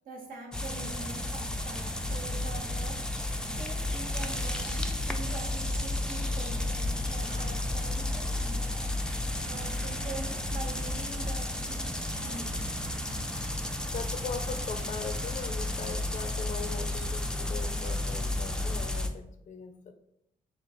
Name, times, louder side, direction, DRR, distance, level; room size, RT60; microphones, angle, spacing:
voice 1, 0.0-3.0 3.6-8.9 9.5-11.8 12.2-12.7, right 3 dB, 75° right, 1 dB, 0.9 m, -44 dB
sound 1, 0.5-19.1, left 1 dB, 5° left, 0.4 m, -32 dB
sound 2, 2.4-8.7, right 3 dB, 30° right, 0.9 m, -54 dB
voice 2, 7.0-7.5 13.6-19.9, left 5 dB, 55° left, 7 dB, 0.5 m, -40 dB
sound 3, 7.9-17.0, right 4 dB, 50° right, 0.7 m, -52 dB
3.1 x 2.5 x 4.1 m, 0.77 s
cardioid pair, 80°, 15 cm